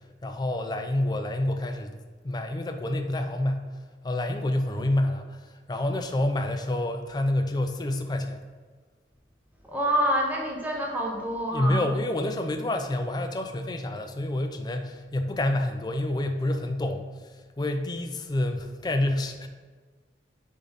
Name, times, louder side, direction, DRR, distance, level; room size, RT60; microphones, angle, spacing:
voice 1, 0.2-1.9 2.2-3.7 4.0-8.4 11.5-17.0 17.6-19.5, left 1 dB, 25° left, 6 dB, 0.4 m, -28 dB
voice 2, 9.6-11.9, equal, 10° right, -1 dB, 0.8 m, -27 dB
6.7 x 3.7 x 4.1 m, 1.5 s
head